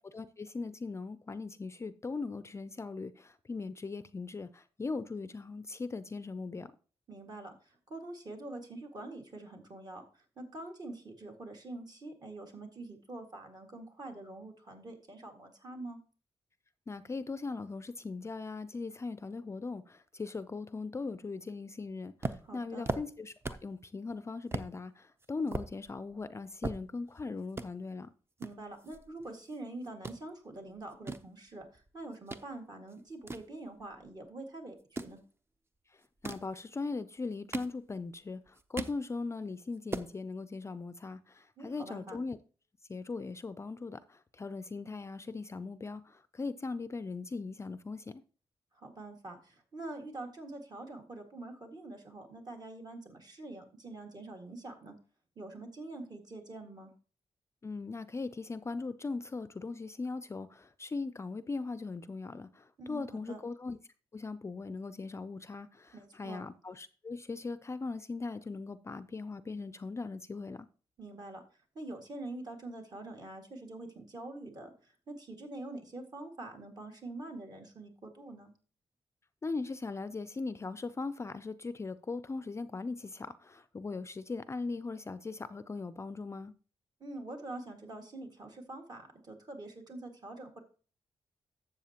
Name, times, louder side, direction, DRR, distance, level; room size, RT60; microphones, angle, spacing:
voice 1, 0.1-6.7 16.9-28.1 35.9-42.4 42.9-48.2 57.6-63.8 64.1-70.7 79.4-86.5, left 3 dB, 25° left, 0.4 m, -39 dB
voice 2, 7.1-16.0 22.4-22.9 28.4-35.2 41.6-42.2 48.7-55.0 55.4-56.9 62.8-63.4 65.9-66.4 71.0-71.4 71.8-78.5 87.0-90.6, right 2 dB, 40° right, 1.9 m, -45 dB
sound 1, 22.2-23.8 24.1-24.2 24.5-24.7 25.2-27.2 27.5-27.7 28.4-29.6 29.8-30.2 30.8-32.5 32.9-34.2 34.8-35.2 36.0-36.5 37.2-38.1 38.5-39.0 39.4-39.5 39.7-40.1, right 3 dB, 25° right, 0.6 m, -39 dB
12.5 x 7.5 x 2.9 m
wide cardioid pair, 125°, 10 cm